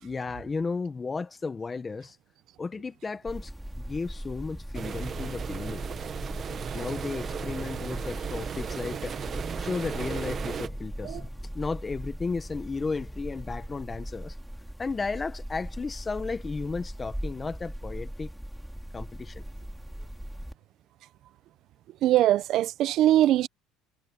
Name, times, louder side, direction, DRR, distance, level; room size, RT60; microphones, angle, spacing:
voice 1, 0.0-2.2 2.6-3.5 3.8-5.8 6.7-9.2 9.6-14.3 14.8-18.3 18.9-19.4, left 4 dB, 20° left, 1.4 m, -34 dB
sound 1, 3.3-20.5, equal, ahead, 2.3 m, -39 dB
sound 2, 4.7-10.7, right 7 dB, 30° right, 1.3 m, -35 dB
voice 2, 22.0-23.5, right 13 dB, 55° right, 0.7 m, -22 dB
cardioid pair, 125°, 0 cm